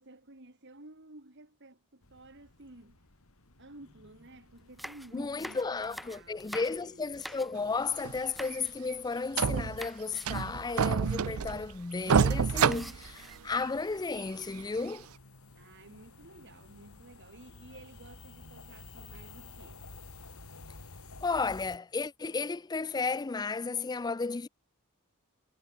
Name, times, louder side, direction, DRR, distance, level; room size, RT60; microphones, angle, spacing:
voice 1, 0.0-3.0 3.6-7.1 15.6-19.8, right 2 dB, 55° right, 2.8 m, -53 dB
sound 1, 2.0-21.8, left 3 dB, 70° left, 2.7 m, -54 dB
sound 2, 4.6-7.8 8.3-8.8 9.0-9.4 9.8-10.6 11.0-11.1 11.3-11.5 12.7-13.6 14.3-14.9, equal, ahead, 1.6 m, -46 dB
voice 2, 5.1-15.1 21.2-24.5, left 4 dB, 20° left, 0.4 m, -33 dB
sound 3, 8.0-8.2 8.5-8.6 8.9-9.0 9.4-9.9 10.2-11.7 12.1-13.7 14.2-14.3 14.9-15.0, right 6 dB, 70° right, 0.5 m, -27 dB
head